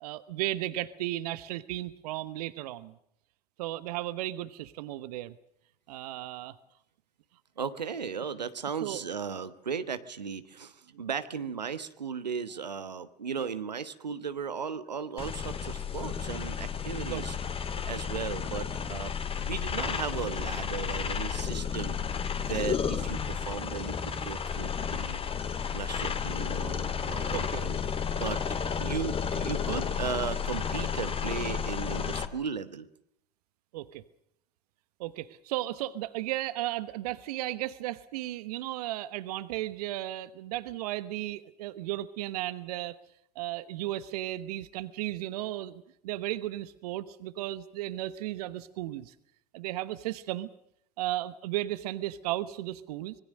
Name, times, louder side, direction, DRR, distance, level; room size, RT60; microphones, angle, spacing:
voice 1, 0.0-2.9 3.6-5.3 5.9-6.6 8.8-9.0 10.9-11.0 13.4-13.5 17.0-17.3 27.3-27.6 33.7-34.0 35.0-42.9 43.3-49.1 49.5-50.5 51.0-53.2, right 15 dB, 65° right, 16 dB, 1.1 m, -35 dB
voice 2, 7.6-17.4 17.8-25.2 25.7-27.8 28.2-28.4 28.8-32.9, right 6 dB, 85° right, 11 dB, 1.2 m, -36 dB
sound 1, 15.2-32.3, left 7 dB, 25° left, 2.2 m, -32 dB
25.5 x 21.0 x 6.5 m, 0.73 s
figure-of-eight pair, 70°, 21 cm